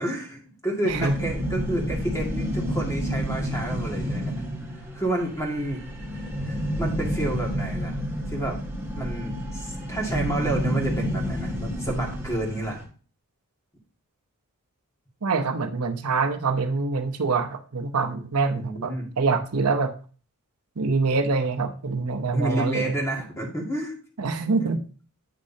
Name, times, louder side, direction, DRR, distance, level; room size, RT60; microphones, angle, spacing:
voice 1, 0.0-4.3 4.9-5.8 6.5-8.0 8.3-8.6 8.9-12.8 18.5-19.1 22.3-23.9 24.6-24.7, right 1 dB, 15° left, -1 dB, 2.1 m, -30 dB
sound 1, 0.9-12.8, equal, 10° right, 2.0 m, -30 dB
voice 2, 15.2-19.9 20.8-22.9 24.2-24.8, right 4 dB, 90° right, 7 dB, 0.8 m, -25 dB
8.8 x 6.4 x 2.8 m, 0.39 s
head